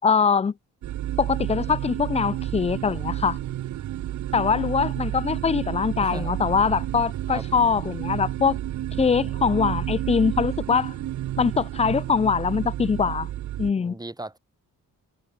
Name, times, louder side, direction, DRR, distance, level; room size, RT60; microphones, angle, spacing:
voice 1, 0.0-0.5 1.2-3.4 4.3-8.6 9.0-10.9 11.4-13.3 13.6-13.9, left 6 dB, 20° left, 0.4 m, -23 dB
sound 1, 0.8-13.7, right 13 dB, 55° right, 0.6 m, -30 dB
voice 2, 6.0-6.3 7.3-7.4 8.5-8.6 9.0-9.3 13.8-14.4, right 2 dB, 10° right, 2.8 m, -37 dB
cardioid pair, 115°, 35 cm